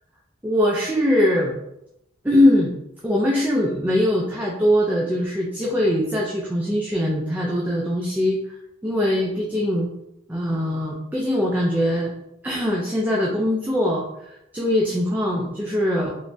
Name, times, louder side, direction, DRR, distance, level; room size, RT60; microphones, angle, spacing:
voice 1, 0.4-1.5 2.2-2.7 3.0-8.4 8.8-9.9 10.3-12.1 12.4-16.1, left 1 dB, 10° right, -3 dB, 0.3 m, -22 dB
3.2 x 3.0 x 2.6 m, 0.83 s
head